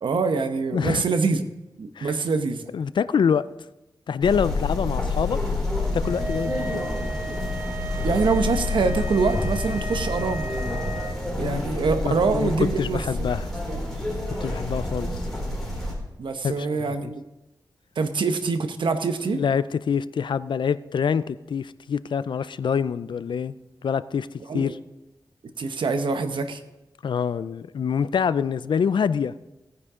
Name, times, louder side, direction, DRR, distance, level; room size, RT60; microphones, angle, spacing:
voice 1, 0.0-1.4 1.8-2.7 8.0-10.5 11.4-13.0 13.7-13.8 16.2-17.2 18.0-19.4 24.5-24.7 25.6-26.6, right 4 dB, 85° right, 8 dB, 1.0 m, -25 dB
voice 2, 0.7-1.0 2.0-2.2 2.7-3.5 4.1-5.4 5.9-6.9 11.4-13.5 14.4-15.1 16.4-16.7 17.0-17.1 19.3-23.5 23.8-24.3 24.5-24.8 27.0-29.3, left 7 dB, 75° left, 16 dB, 0.4 m, -25 dB
sound 1, 4.2-15.9, left 2 dB, 5° left, 4.2 m, -28 dB
sound 2, 6.0-11.2, right 2 dB, 25° right, 1.1 m, -35 dB
17.5 x 9.8 x 3.7 m, 0.98 s
wide cardioid pair, 115°, 8 cm